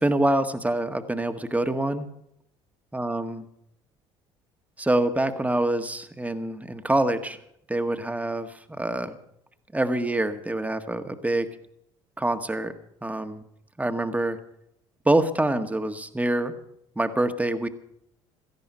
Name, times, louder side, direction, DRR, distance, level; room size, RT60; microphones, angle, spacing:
voice 1, 0.0-2.1 2.9-3.4 4.8-7.4 7.7-9.2 9.7-11.5 12.2-12.7 13.0-13.4 13.8-14.4 15.1-16.6 17.0-17.7, right 1 dB, 10° right, 8 dB, 1.7 m, -25 dB
17.5 x 14.0 x 5.6 m, 0.75 s
hypercardioid pair, 60°, 14 cm